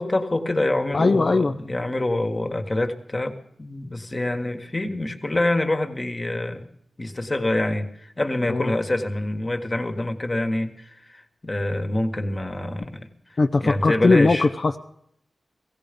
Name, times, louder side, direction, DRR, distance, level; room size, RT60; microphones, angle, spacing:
voice 1, 0.0-6.7 7.0-13.1 13.6-14.5, left 1 dB, 30° left, 7 dB, 1.5 m, -26 dB
voice 2, 0.9-1.5 8.5-8.7 13.4-14.8, left 3 dB, 50° left, 6 dB, 0.6 m, -19 dB
16.5 x 16.0 x 5.2 m, 0.71 s
wide cardioid pair, 75°, 0 cm